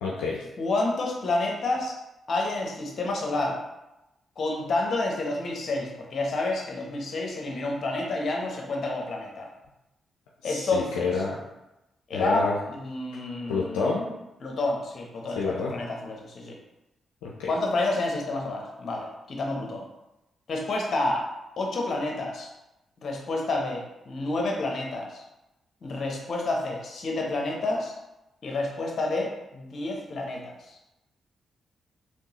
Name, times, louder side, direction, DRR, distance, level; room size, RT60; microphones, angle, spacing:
voice 1, 0.0-0.4 10.4-11.4 12.1-12.6 13.5-14.1 15.4-15.7 17.2-17.5, left 4 dB, 85° left, -4 dB, 0.4 m, -28 dB
voice 2, 0.6-2.0 2.3-3.6 4.4-9.5 10.4-11.2 12.1-13.9 14.4-16.6 17.5-19.9 20.5-21.3 21.6-22.5 23.0-25.2 25.8-27.9 28.4-30.7, left 2 dB, 60° left, 0 dB, 0.8 m, -29 dB
3.6 x 3.0 x 2.9 m, 0.94 s
hypercardioid pair, 45°, 0 cm